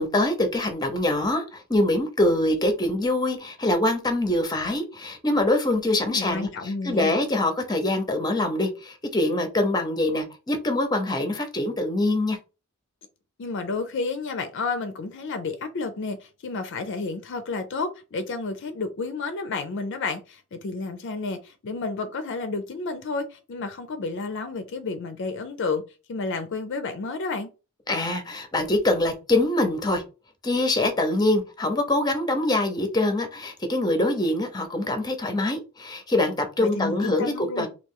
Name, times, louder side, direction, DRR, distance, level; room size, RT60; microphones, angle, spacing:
voice 1, 0.0-6.5 6.8-12.4 27.9-30.0 30.4-37.7, left 1 dB, 20° left, 0.6 m, -24 dB
voice 2, 6.0-7.2 13.4-25.8 26.1-27.5 36.6-37.7, left 3 dB, 60° left, 0.5 m, -31 dB
3.0 x 2.4 x 3.6 m
head